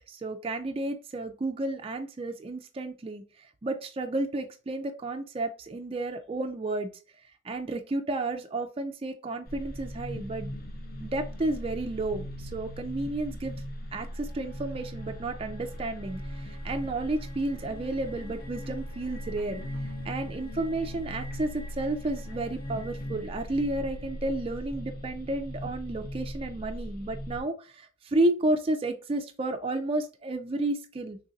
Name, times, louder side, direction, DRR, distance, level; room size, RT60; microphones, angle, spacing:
voice 1, 0.1-6.9 7.4-10.5 11.0-13.6 13.9-19.6 20.0-31.2, right 2 dB, 30° right, 5 dB, 0.4 m, -32 dB
sound 1, 9.5-27.4, equal, 45° left, 0.8 m, -39 dB
3.2 x 2.5 x 3.8 m, 0.34 s
head